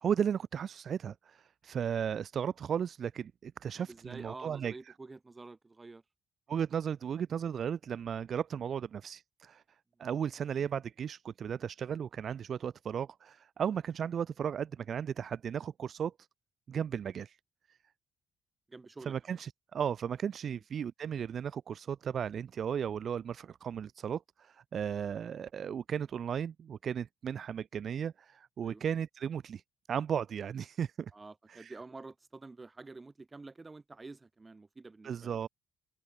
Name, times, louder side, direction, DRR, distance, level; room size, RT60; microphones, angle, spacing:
voice 1, 0.0-4.8 6.5-9.6 10.0-16.1 16.7-17.4 19.1-29.6 29.9-31.1 31.5-31.7 35.0-35.5, right 8 dB, 55° right, 1.7 m, -35 dB
voice 2, 3.8-6.0 18.7-19.1 20.5-20.6 28.6-28.8 31.1-35.3, right 3 dB, 25° right, 4.8 m, -48 dB
cardioid pair, 90°, 0 cm